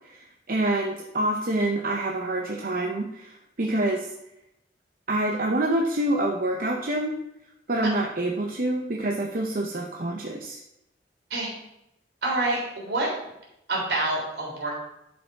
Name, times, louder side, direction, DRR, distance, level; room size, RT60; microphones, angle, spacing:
voice 1, 0.5-3.3 3.6-4.1 5.1-7.1 7.7-10.6, right 1 dB, 50° right, 0 dB, 0.8 m, -26 dB
voice 2, 12.2-13.1 13.7-14.7, right 2 dB, 75° right, -2 dB, 3.3 m, -27 dB
11.5 x 5.3 x 4.6 m, 0.85 s
head